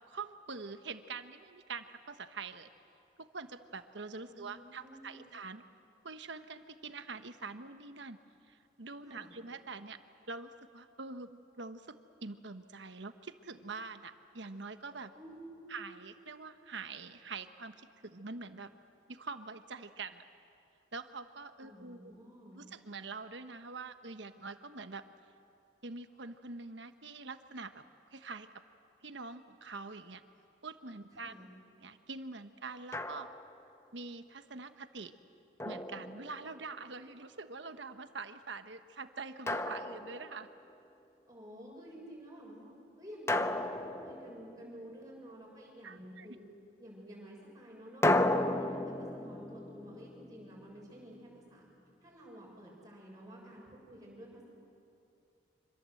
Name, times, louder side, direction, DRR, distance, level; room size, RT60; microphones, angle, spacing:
voice 1, 0.1-2.7 3.2-5.6 6.0-8.2 8.5-10.0 10.3-11.9 12.2-15.1 15.7-18.7 19.1-20.2 20.9-22.1 22.5-25.0 25.8-27.8 28.1-28.5 29.0-30.2 30.6-31.3 31.8-33.3 33.9-35.1 35.6-40.5 45.8-46.3, right 4 dB, 70° right, 9 dB, 1.2 m, -45 dB
voice 2, 4.3-5.3 9.0-9.3 15.1-15.8 21.6-22.6 31.2-31.5 41.3-42.7 43.0-46.4 46.8-51.7 52.0-54.4, equal, 20° right, -3 dB, 7.1 m, -51 dB
Drum, 32.9-33.6 35.6-36.7 39.5-40.6 43.3-44.9 48.0-51.0, left 1 dB, 15° left, 0.7 m, -34 dB
26.5 x 26.0 x 7.8 m, 2.6 s
head